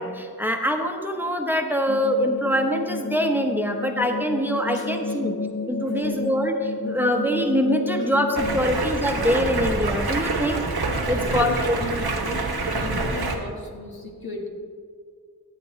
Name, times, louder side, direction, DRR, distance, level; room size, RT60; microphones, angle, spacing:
voice 1, 0.0-5.4 5.7-10.6 11.1-11.7, equal, 5° right, 4 dB, 0.9 m, -24 dB
sound 1, 1.9-8.6, left 3 dB, 25° left, 0.7 m, -30 dB
voice 2, 4.7-5.2 5.8-6.1 8.0-8.1 8.5-8.7 11.0-14.5, left 2 dB, 75° left, 0 dB, 1.5 m, -36 dB
Stream, 8.4-13.4, right 3 dB, 90° right, 1.1 m, -26 dB
14.0 x 8.4 x 3.2 m, 2.1 s
wide cardioid pair, 45°, 37 cm